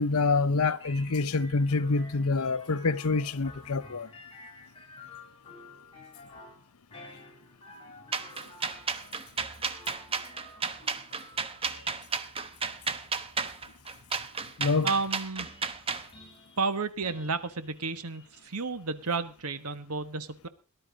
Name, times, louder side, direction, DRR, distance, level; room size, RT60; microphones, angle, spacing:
voice 1, 0.0-4.1 14.6-14.9, left 3 dB, 75° left, 0.8 m, -26 dB
sound 1, 0.8-19.5, left 2 dB, 25° left, 4.4 m, -52 dB
sound 2, 8.1-16.1, right 5 dB, 25° right, 1.0 m, -32 dB
voice 2, 14.8-15.5 16.6-20.5, right 4 dB, 90° right, 1.3 m, -32 dB
18.5 x 11.5 x 3.9 m
head